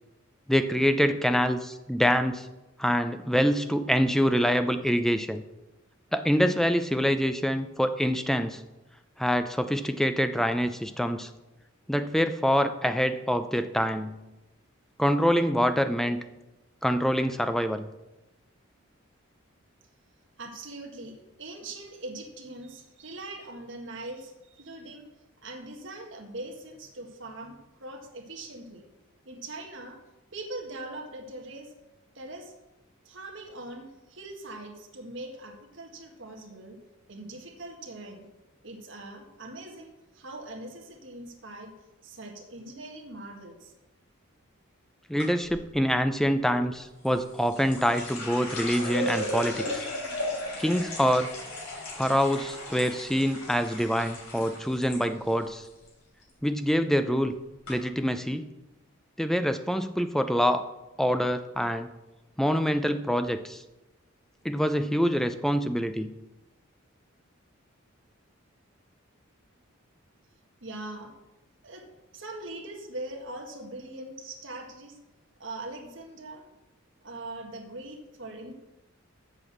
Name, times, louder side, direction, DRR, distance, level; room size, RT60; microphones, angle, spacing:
voice 1, 0.5-2.5 2.8-5.4 6.1-8.6 9.2-11.3 11.9-14.2 15.0-16.2 16.8-17.9 45.1-49.8 50.6-51.3 52.0-55.6 56.4-57.3 57.7-58.4 59.2-60.7 61.0-61.9 62.4-63.6 64.4-66.1, equal, ahead, 9 dB, 0.4 m, -25 dB
voice 2, 20.4-25.1 25.4-28.8 29.2-30.0 30.3-31.7 32.1-32.5 33.0-36.8 37.1-38.2 38.6-41.7 42.0-43.7 70.6-71.1 71.6-71.9 72.1-75.0 75.4-76.5 77.0-78.5, right 2 dB, 60° right, 2 dB, 1.7 m, -41 dB
sound 1, 45.2-45.6 47.0-55.0 55.3-55.9 56.2-56.6 57.2-57.3 57.6-57.7, left 1 dB, 80° left, 3.9 m, -36 dB
7.9 x 6.3 x 7.3 m, 1.0 s
head